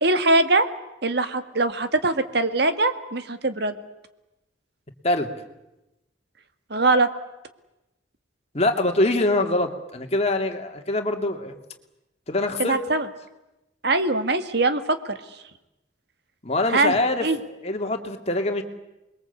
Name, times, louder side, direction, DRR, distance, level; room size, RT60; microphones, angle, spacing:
voice 1, 0.0-0.7 1.0-3.8 6.7-7.1 12.6-13.1 13.8-15.0 16.7-16.9 17.2-17.4, right 2 dB, 60° right, 9 dB, 1.8 m, -22 dB
voice 2, 8.5-11.6 12.3-12.8 16.4-18.6, left 2 dB, 35° left, 4 dB, 2.5 m, -24 dB
28.5 x 22.0 x 8.3 m, 0.95 s
head